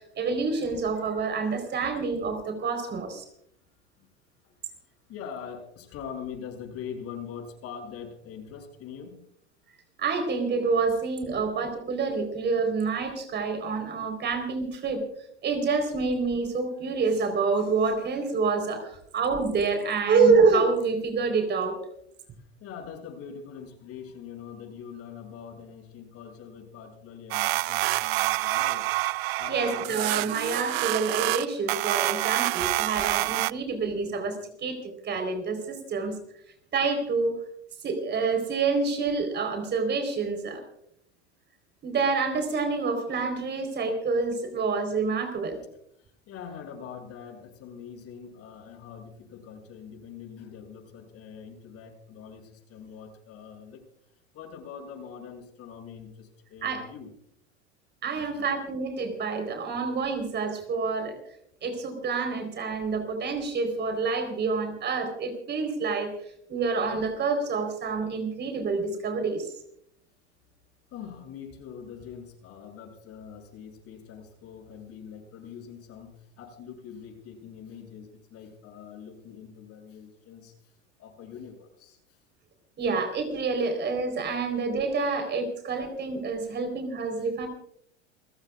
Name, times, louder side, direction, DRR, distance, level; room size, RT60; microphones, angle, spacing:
voice 1, 0.0-3.2 10.0-15.0 15.4-21.8 29.5-36.1 36.7-37.4 37.8-40.6 41.8-45.6 56.6-56.9 58.0-61.1 61.6-66.1 66.5-69.5 82.8-87.5, right 4 dB, 30° right, 6 dB, 4.2 m, -27 dB
voice 2, 5.1-9.2 11.3-11.4 22.6-28.9 29.4-30.0 33.9-34.0 46.3-53.8 54.3-57.1 58.1-58.5 70.9-80.5 81.0-82.0 87.1-87.2, left 7 dB, 45° left, 3 dB, 7.2 m, -43 dB
sound 1, 27.3-33.5, right 20 dB, 65° right, 0.5 m, -27 dB
29.0 x 15.5 x 2.5 m, 0.70 s
hypercardioid pair, 100°, 34 cm